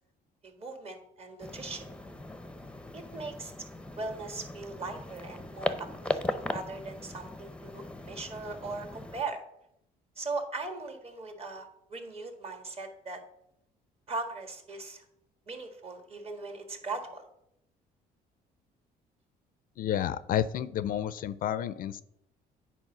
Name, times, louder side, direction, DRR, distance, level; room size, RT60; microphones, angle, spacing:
voice 1, 0.4-1.9 2.9-3.5 3.9-9.4 10.2-13.2 14.1-15.0 15.5-17.2, right 3 dB, 35° right, 5 dB, 1.6 m, -39 dB
sound 1, 1.4-9.2, left 2 dB, 5° left, 0.6 m, -38 dB
voice 2, 19.8-22.0, left 10 dB, 55° left, 16 dB, 0.4 m, -30 dB
8.9 x 4.4 x 6.0 m, 0.79 s
cardioid pair, 110°, 17 cm